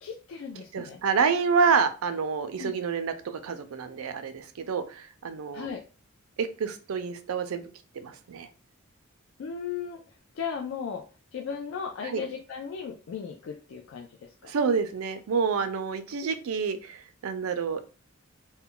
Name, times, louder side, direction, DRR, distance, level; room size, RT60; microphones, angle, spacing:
voice 1, 0.0-1.0 2.6-2.7 5.5-5.8 9.4-10.0 10.3-11.0 11.3-14.5, left 6 dB, 65° left, 2 dB, 0.3 m, -36 dB
voice 2, 0.7-5.7 6.4-7.7 7.9-8.5 12.0-12.2 14.4-17.8, right 5 dB, 85° right, 10 dB, 0.4 m, -28 dB
2.2 x 2.1 x 3.7 m, 0.36 s
head